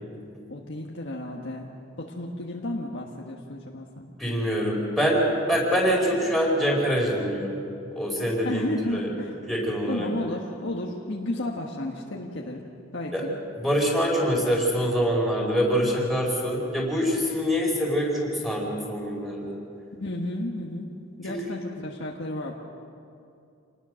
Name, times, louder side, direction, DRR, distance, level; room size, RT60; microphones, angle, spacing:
voice 1, 0.5-1.7 2.0-4.1 8.4-9.4 9.9-13.4 19.9-20.9 21.2-22.6, left 1 dB, 55° left, -1 dB, 1.6 m, -33 dB
voice 2, 4.2-7.6 7.9-9.1 9.5-10.1 13.1-13.2 13.6-19.6 21.2-21.4, equal, ahead, -3 dB, 4.8 m, -25 dB
28.0 x 19.5 x 6.5 m, 2.6 s
head